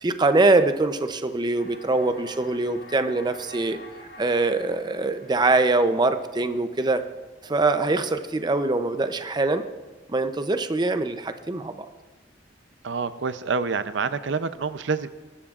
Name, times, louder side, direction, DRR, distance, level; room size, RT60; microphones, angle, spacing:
voice 1, 0.0-3.8 4.2-7.0 7.4-9.7 10.1-11.9, right 2 dB, 25° right, 9 dB, 0.6 m, -23 dB
sound 1, 1.5-7.5, left 2 dB, 90° left, 3.7 m, -48 dB
voice 2, 12.8-15.1, right 4 dB, 85° right, 12 dB, 0.6 m, -27 dB
21.0 x 12.5 x 2.4 m, 1.3 s
head